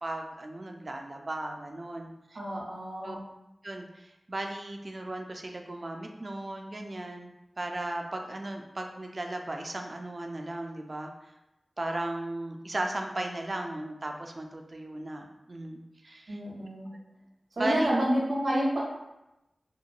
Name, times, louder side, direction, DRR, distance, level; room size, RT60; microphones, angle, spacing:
voice 1, 0.0-2.4 3.0-3.2 3.6-7.3 7.6-11.1 11.8-16.4 16.9-17.0 17.6-17.9, right 1 dB, 50° right, 3 dB, 0.4 m, -36 dB
voice 2, 2.3-3.2 16.3-16.9 17.6-18.8, equal, 80° right, -4 dB, 0.8 m, -29 dB
2.9 x 2.1 x 2.5 m, 0.93 s
cardioid pair, 40°, 0 cm